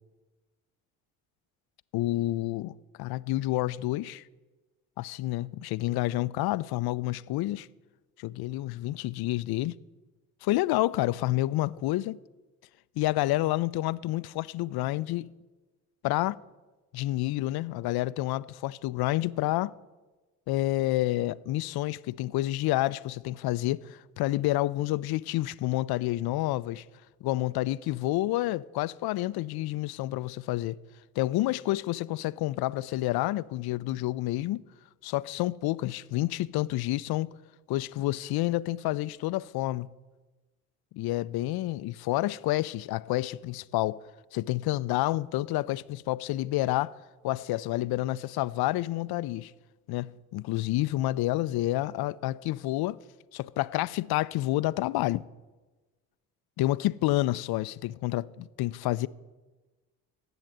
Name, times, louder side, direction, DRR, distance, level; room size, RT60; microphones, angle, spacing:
voice 1, 1.9-4.2 5.0-7.7 8.2-9.8 10.4-12.2 13.0-15.3 16.0-16.4 16.9-19.8 20.5-26.8 27.2-30.8 31.2-34.6 35.0-37.3 37.7-39.9 40.9-44.0 44.3-47.0 47.2-49.5 49.9-53.0 53.3-55.2 56.6-59.1, left 17 dB, 55° left, 0.5 m, -29 dB
10.5 x 8.0 x 7.9 m
hypercardioid pair, 50°, 47 cm